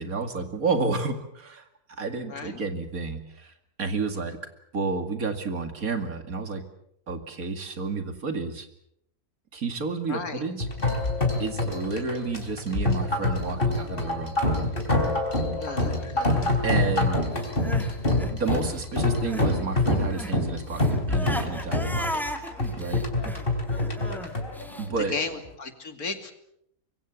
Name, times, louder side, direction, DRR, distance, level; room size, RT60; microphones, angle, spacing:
voice 1, 0.0-3.5 3.8-4.4 4.7-6.6 7.1-8.7 9.5-10.7 11.4-14.4 16.6-17.2 18.3-22.2 22.7-23.0 24.8-25.1, right 4 dB, 75° right, 8 dB, 2.7 m, -30 dB
voice 2, 2.3-2.6 4.1-4.2 10.1-10.4 12.0-12.1 15.6-16.6 23.4-23.5 24.1-24.2 25.0-26.3, left 4 dB, 80° left, 7 dB, 2.9 m, -35 dB
sound 1, 10.6-25.5, left 2 dB, 35° left, 4.2 m, -26 dB
Crying sobbing, 17.4-19.6 19.8-24.9, equal, ahead, 2.2 m, -36 dB
25.0 x 23.0 x 7.2 m, 0.74 s
omnidirectional pair, 1.5 m